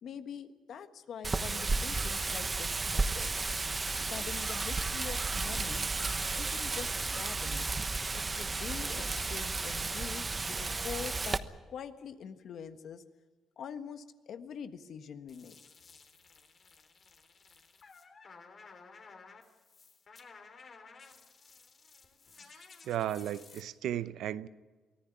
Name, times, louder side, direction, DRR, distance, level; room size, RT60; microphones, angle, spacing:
voice 1, 0.0-3.3 4.1-5.9 6.4-7.7 8.1-11.4 11.7-13.0 13.6-15.6, left 7 dB, 65° left, 1.4 m, -44 dB
Wind, 1.2-11.4, right 3 dB, 25° right, 1.1 m, -33 dB
sound 1, 15.3-23.6, left 4 dB, 45° left, 3.5 m, -55 dB
voice 2, 22.8-24.5, right 11 dB, 80° right, 0.7 m, -34 dB
23.5 x 15.0 x 9.8 m
cardioid pair, 90°, 0 cm